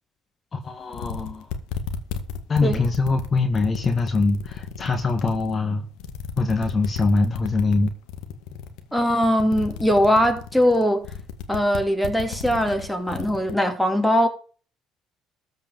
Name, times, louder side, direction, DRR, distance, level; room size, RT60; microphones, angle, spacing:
voice 1, 0.5-1.5 2.5-5.8 6.4-7.9, left 3 dB, 35° left, 1.7 m, -23 dB
sound 1, 0.6-0.7 0.9-5.5 5.9-13.5, left 8 dB, 85° left, 1.9 m, -33 dB
voice 2, 8.9-11.0 11.5-14.3, equal, ahead, 3.0 m, -21 dB
14.0 x 5.0 x 7.7 m
supercardioid pair, 90°, 0 cm